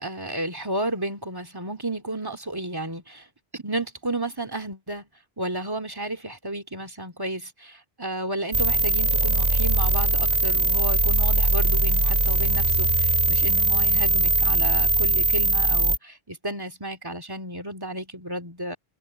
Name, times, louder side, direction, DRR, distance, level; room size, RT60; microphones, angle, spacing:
voice 1, 0.0-3.3 3.5-5.1 5.4-18.8, right 1 dB, 20° right, 2.5 m, -32 dB
sound 1, 8.5-16.0, right 2 dB, 45° right, 4.4 m, -21 dB
omnidirectional pair, 1.1 m